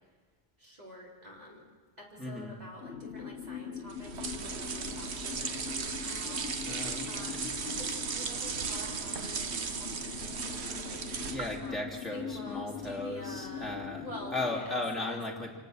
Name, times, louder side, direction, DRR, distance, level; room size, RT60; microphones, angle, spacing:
voice 1, 0.6-1.6 2.0-6.4 7.1-7.4 7.7-11.0 11.6-15.2, equal, 35° right, -3 dB, 4.5 m, -48 dB
voice 2, 2.2-2.6 6.6-7.1 11.3-14.1 14.3-15.6, left 2 dB, ahead, -2 dB, 2.8 m, -36 dB
sound 1, 2.8-14.6, left 7 dB, 65° left, 1.1 m, -42 dB
sound 2, 3.9-11.7, right 5 dB, 70° right, 1.3 m, -36 dB
27.5 x 18.0 x 6.5 m, 1.5 s
omnidirectional pair, 1.1 m